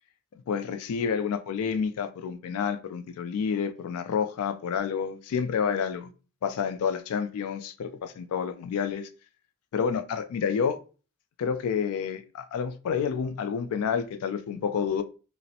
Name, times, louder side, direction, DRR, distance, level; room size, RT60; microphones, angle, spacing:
voice 1, 0.5-6.1 6.4-9.1 9.7-10.8 11.4-15.0, left 6 dB, 80° left, 0.3 m, -29 dB
2.4 x 2.0 x 2.7 m
head